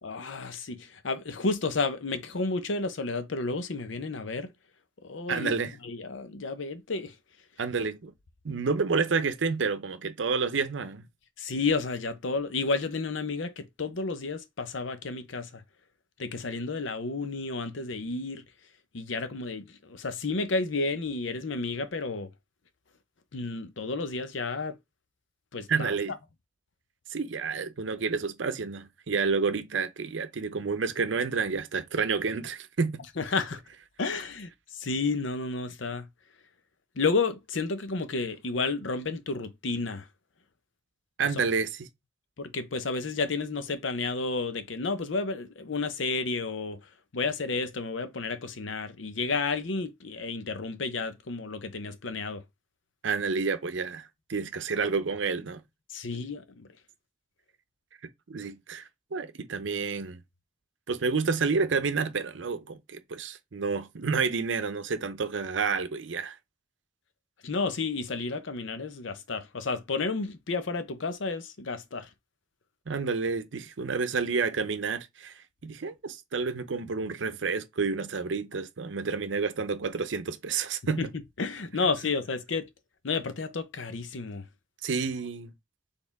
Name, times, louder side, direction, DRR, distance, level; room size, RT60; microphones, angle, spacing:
voice 1, 0.0-4.5 5.0-5.5 5.8-7.1 11.4-15.6 16.2-18.4 18.9-22.3 23.3-24.8 25.5-26.0 33.2-33.6 34.0-36.1 37.0-40.1 41.3-41.4 42.4-46.8 47.1-52.4 55.9-56.7 67.4-72.1 81.0-81.1 81.4-82.7 83.0-84.4, left 3 dB, 80° left, 0.7 m, -31 dB
voice 2, 5.3-5.7 7.6-8.1 8.4-11.0 25.7-26.1 27.1-33.0 41.2-41.9 53.0-55.6 58.3-60.2 60.9-66.4 72.9-75.3 75.6-81.0 84.8-85.5, right 5 dB, 70° right, 0.6 m, -29 dB
4.3 x 3.5 x 3.5 m
head